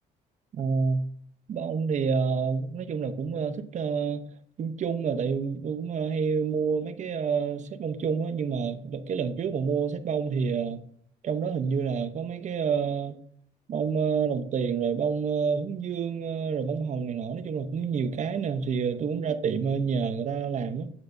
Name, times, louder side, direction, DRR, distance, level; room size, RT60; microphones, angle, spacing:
voice 1, 0.5-1.0 1.5-4.3 4.6-10.8 11.2-13.2 13.7-20.9, right 6 dB, 45° right, 0.9 m, -28 dB
9.0 x 7.8 x 2.7 m
cardioid pair, 110°, 17 cm